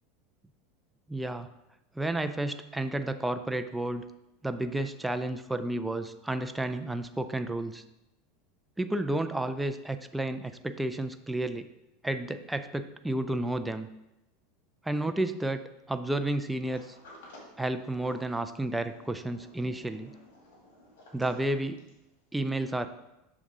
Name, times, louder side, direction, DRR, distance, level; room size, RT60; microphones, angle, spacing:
voice 1, 1.1-1.5 2.0-4.1 4.4-7.8 8.8-11.7 12.0-13.9 14.8-16.9 17.6-20.1 21.1-21.8 22.3-22.9, right 1 dB, 5° right, 8 dB, 0.3 m, -31 dB
Sliding door, 16.6-22.1, left 1 dB, 75° left, 2.0 m, -53 dB
6.6 x 3.7 x 4.7 m, 0.91 s
supercardioid pair, 120°, 0 cm